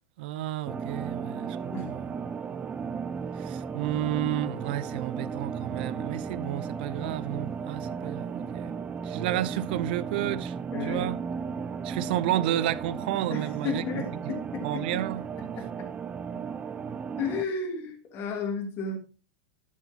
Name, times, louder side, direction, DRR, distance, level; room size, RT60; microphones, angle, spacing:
voice 1, 0.2-2.0 3.4-8.8 9.0-10.5 10.8-11.2 11.8-13.8 14.6-15.2, right 13 dB, 60° right, 0.7 m, -31 dB
sound 1, 0.7-17.4, right 6 dB, 20° right, 0.7 m, -35 dB
voice 2, 10.7-11.1 13.3-15.0 15.6-15.9 16.3-16.4 17.2-19.0, left 4 dB, 40° left, 3.1 m, -33 dB
12.0 x 7.4 x 3.0 m
hypercardioid pair, 100°, 6 cm